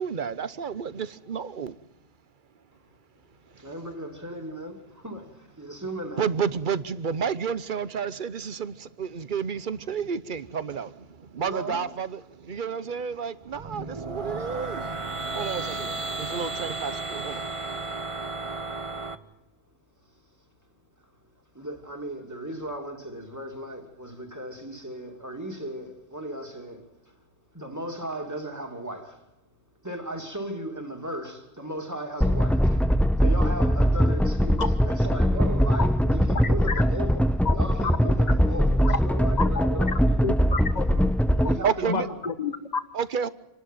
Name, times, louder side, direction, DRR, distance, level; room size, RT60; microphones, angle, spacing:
voice 1, 0.0-1.8 6.2-17.9 41.6-42.1 42.9-43.3, right 6 dB, 55° right, 1.1 m, -31 dB
voice 2, 3.6-6.3 11.4-11.9 15.1-16.2 21.5-27.2 27.5-29.3 29.8-32.9 33.2-40.2 40.8-42.2, right 1 dB, 15° right, 2.8 m, -37 dB
sound 1, 13.4-19.2, right 3 dB, 30° right, 1.1 m, -33 dB
sound 2, 32.2-41.6, equal, ahead, 0.5 m, -22 dB
voice 3, 40.2-40.8 41.8-42.8, left 4 dB, 45° left, 1.6 m, -29 dB
28.0 x 12.0 x 9.3 m
omnidirectional pair, 1.0 m